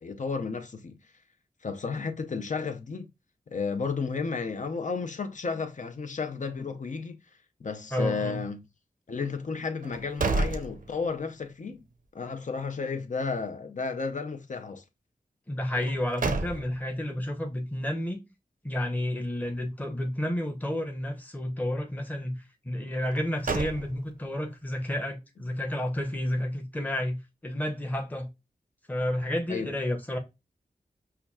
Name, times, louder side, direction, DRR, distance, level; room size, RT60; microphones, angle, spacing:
voice 1, 0.0-0.9 1.6-3.1 3.5-7.2 7.6-8.7 9.1-11.8 12.1-14.8 29.5-29.7, left 4 dB, 55° left, 0.6 m, -32 dB
voice 2, 7.9-8.4 15.5-18.2 18.6-28.3 28.9-30.2, left 1 dB, 10° left, 0.7 m, -31 dB
sound 1, 9.8-11.4 11.8-11.9 15.7-17.0 23.0-24.3, right 3 dB, 65° right, 0.6 m, -31 dB
5.6 x 2.3 x 2.3 m
wide cardioid pair, 70°, 15 cm